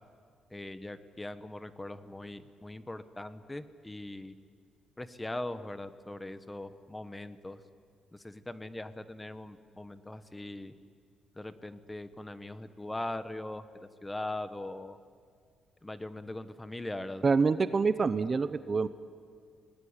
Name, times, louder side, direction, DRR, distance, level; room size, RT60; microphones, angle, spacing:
voice 1, 0.5-4.3 5.0-7.6 8.1-10.7 11.3-15.0 15.8-17.2, left 1 dB, 15° left, 11 dB, 1.3 m, -40 dB
voice 2, 17.2-18.9, right 4 dB, 35° right, 13 dB, 0.9 m, -26 dB
26.5 x 19.5 x 9.9 m, 2.1 s
cardioid pair, 90°, 0 cm